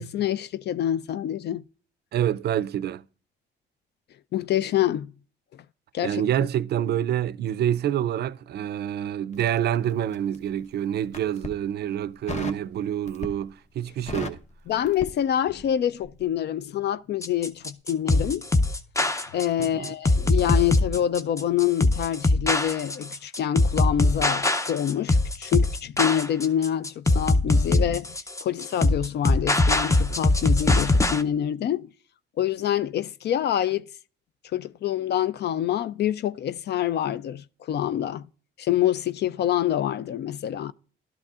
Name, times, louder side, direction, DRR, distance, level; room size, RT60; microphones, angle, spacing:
voice 1, 0.0-1.6 4.3-5.1 5.9-6.2 14.7-18.5 19.3-31.9 32.4-33.9 34.5-38.3 38.6-40.7, left 10 dB, 60° left, 0.4 m, -26 dB
voice 2, 2.1-3.0 6.0-14.4 19.6-19.9, right 10 dB, 55° right, 0.4 m, -27 dB
Crackle, 9.3-10.5 11.0-11.6 12.3-12.7 13.1-13.5 13.8-15.8 16.0-16.2, left 3 dB, 35° left, 1.0 m, -36 dB
sound 1, 17.2-31.2, left 2 dB, 15° left, 0.6 m, -22 dB
12.0 x 11.5 x 2.4 m
cardioid pair, 90°, 20 cm